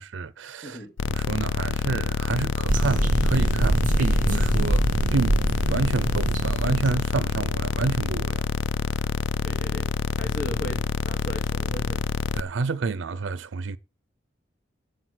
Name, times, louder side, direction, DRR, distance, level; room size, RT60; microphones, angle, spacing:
voice 1, 0.0-8.5 12.3-13.8, right 4 dB, 85° right, 0.5 m, -29 dB
voice 2, 0.6-0.9 9.4-12.1, equal, 45° left, 1.5 m, -37 dB
sound 1, 1.0-12.4, left 5 dB, 85° left, 0.4 m, -27 dB
sound 2, 2.7-7.0, right 1 dB, 40° right, 0.8 m, -24 dB
8.0 x 6.0 x 7.9 m
head